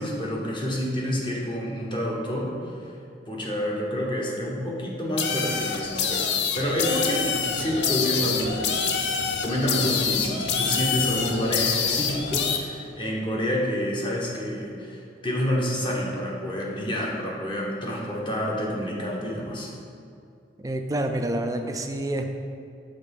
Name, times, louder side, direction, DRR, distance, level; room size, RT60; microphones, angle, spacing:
voice 1, 0.0-2.5 3.3-8.9 9.4-19.7, equal, 30° left, -3 dB, 1.1 m, -28 dB
sound 1, 5.2-12.6, left 6 dB, 70° left, 0.6 m, -26 dB
voice 2, 20.6-22.3, right 1 dB, 20° right, 5 dB, 0.4 m, -28 dB
6.8 x 3.7 x 5.4 m, 2.4 s
head